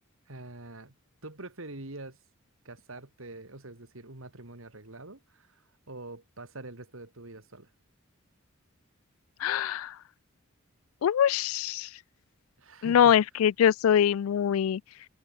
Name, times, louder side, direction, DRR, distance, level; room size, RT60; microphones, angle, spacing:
voice 1, 0.3-1.0 1.2-2.2 2.6-7.7 12.6-13.2, right 2 dB, 70° right, 2.7 m, -45 dB
voice 2, 9.4-9.9 11.0-11.9 12.8-14.8, left 9 dB, 80° left, 0.3 m, -23 dB
head